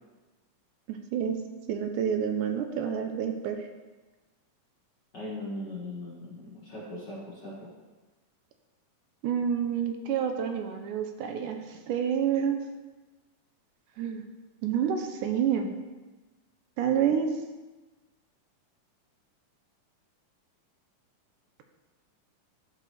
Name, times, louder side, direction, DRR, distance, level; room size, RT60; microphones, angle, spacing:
voice 1, 0.9-1.4 1.7-3.6 9.2-12.6 14.0-14.2 14.6-15.7 16.8-17.4, right 8 dB, 80° right, 6 dB, 2.1 m, -28 dB
voice 2, 5.1-7.5, left 1 dB, 50° left, -7 dB, 1.3 m, -39 dB
12.0 x 4.8 x 3.2 m, 1.2 s
omnidirectional pair, 3.8 m